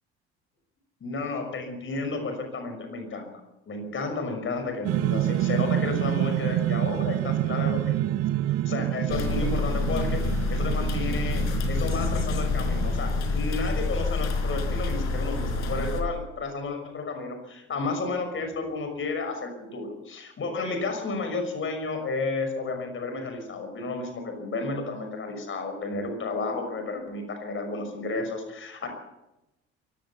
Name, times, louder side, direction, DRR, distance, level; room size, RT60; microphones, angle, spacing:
voice 1, 1.0-3.3 3.7-8.1 8.4-10.2 10.5-28.9, left 3 dB, 35° left, 5 dB, 6.2 m, -32 dB
sound 1, 4.8-13.5, right 13 dB, 45° right, 0.9 m, -28 dB
sound 2, 9.1-16.0, left 3 dB, 55° left, 4.7 m, -27 dB
23.5 x 15.5 x 7.1 m, 0.92 s
figure-of-eight pair, 55°, 34 cm